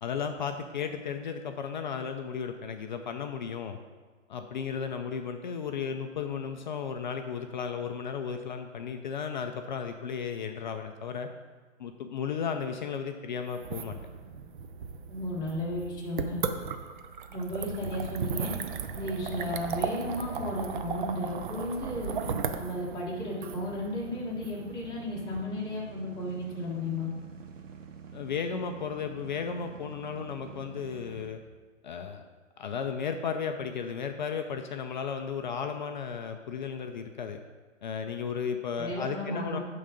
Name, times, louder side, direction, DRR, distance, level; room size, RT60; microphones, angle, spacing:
voice 1, 0.0-3.8 4.3-11.3 11.8-14.0 28.1-31.4 31.8-32.2 32.6-37.4 37.8-39.6, left 6 dB, 40° left, 6 dB, 0.4 m, -34 dB
sound 1, 13.5-25.4, right 6 dB, 40° right, 0.5 m, -36 dB
voice 2, 15.1-16.4 17.3-18.5 18.9-22.2 22.5-27.1 38.8-39.6, left 1 dB, 10° left, -5 dB, 1.5 m, -34 dB
sound 2, 17.7-31.3, right 6 dB, 70° right, 1.0 m, -47 dB
11.0 x 3.8 x 5.1 m, 1.4 s
hypercardioid pair, 145°, 38 cm